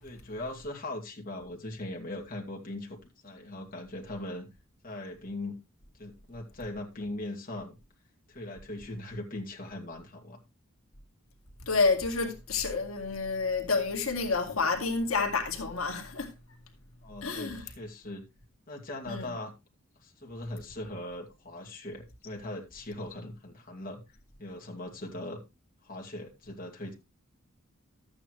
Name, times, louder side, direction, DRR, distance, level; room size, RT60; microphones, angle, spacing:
voice 1, 0.0-3.0 3.2-4.5 4.8-5.6 6.0-7.8 8.3-10.4 17.0-18.2 18.7-19.5 20.0-24.0 24.4-25.4 25.8-26.9, left 1 dB, 45° left, 2.5 m, -40 dB
voice 2, 11.6-16.3 17.2-17.6 19.1-19.3, left 4 dB, 80° left, 2.1 m, -29 dB
13.0 x 8.8 x 3.2 m
head